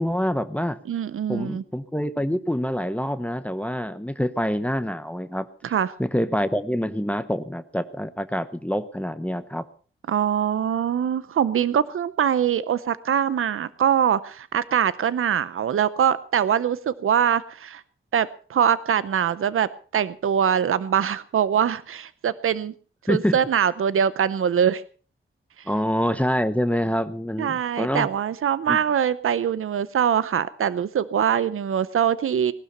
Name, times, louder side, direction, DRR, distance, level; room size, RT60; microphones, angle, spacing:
voice 1, 0.0-0.8 1.3-9.7 23.1-23.4 25.7-28.1 28.7-28.8, equal, 5° left, 12 dB, 1.0 m, -26 dB
voice 2, 0.9-1.6 5.6-5.9 10.1-17.8 18.1-22.7 23.1-24.8 27.4-32.5, right 8 dB, 90° right, 16 dB, 0.6 m, -23 dB
19.0 x 12.5 x 5.4 m, 0.41 s
wide cardioid pair, 75°, 21 cm